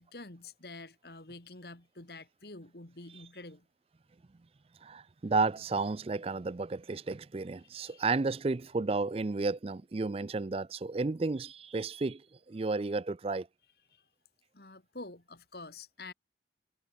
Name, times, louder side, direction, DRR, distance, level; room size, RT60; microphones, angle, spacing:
voice 1, 0.0-3.7 7.7-8.0 13.9-14.0 14.5-16.1, left 2 dB, 60° left, 2.3 m, -48 dB
voice 2, 4.8-12.2 12.5-13.5, right 3 dB, 30° right, 0.4 m, -32 dB
head